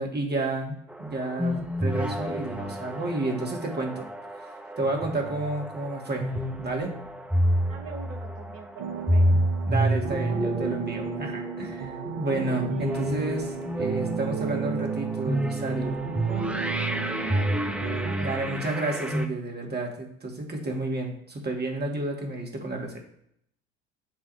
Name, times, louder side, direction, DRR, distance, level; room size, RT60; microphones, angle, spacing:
voice 1, 0.0-4.1 4.8-6.3 6.6-6.9 9.3-16.0 18.2-23.0, right 2 dB, 25° right, 1 dB, 2.0 m, -31 dB
sound 1, 0.9-19.3, right 1 dB, 5° right, 0.8 m, -29 dB
voice 2, 7.6-9.3 17.1-18.4, right 5 dB, 85° right, 4 dB, 1.1 m, -43 dB
sound 2, 8.8-18.2, right 7 dB, 50° right, 0.9 m, -34 dB
9.3 x 3.4 x 3.4 m, 0.72 s
hypercardioid pair, 60°, 39 cm